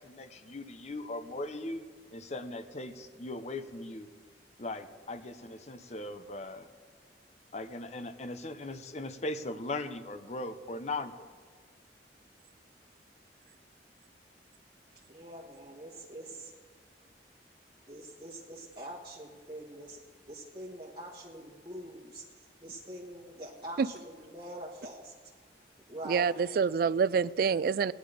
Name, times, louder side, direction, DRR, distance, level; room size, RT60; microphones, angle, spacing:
voice 1, 0.0-1.8 2.1-4.1 4.6-6.7 7.5-11.3, left 2 dB, 40° left, 9 dB, 0.7 m, -39 dB
voice 2, 15.1-16.5 17.9-20.0 20.3-22.2 22.6-25.1 25.9-26.6, right 1 dB, 25° right, -4 dB, 1.4 m, -44 dB
voice 3, 26.0-27.9, right 6 dB, 55° right, 17 dB, 0.3 m, -27 dB
18.5 x 10.5 x 5.0 m, 1.5 s
head